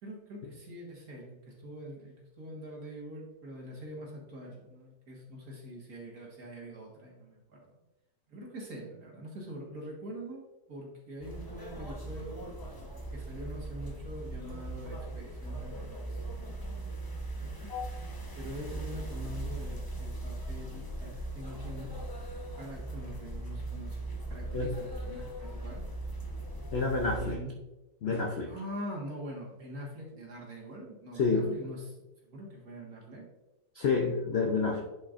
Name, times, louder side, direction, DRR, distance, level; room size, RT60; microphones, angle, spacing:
voice 1, 0.0-7.6 8.3-10.4 10.7-12.4 13.1-16.1 17.4-17.7 18.4-21.9 22.6-25.8 27.2-27.5 28.5-31.9 32.2-33.3, equal, 55° right, -2 dB, 2.1 m, -44 dB
sound 1, 11.2-27.4, right 2 dB, 20° left, 0.6 m, -39 dB
voice 2, 26.7-27.4 28.0-28.5 31.1-31.6 33.7-34.8, left 4 dB, 60° left, 2 dB, 0.6 m, -29 dB
10.5 x 5.1 x 2.5 m, 1.0 s
omnidirectional pair, 1.9 m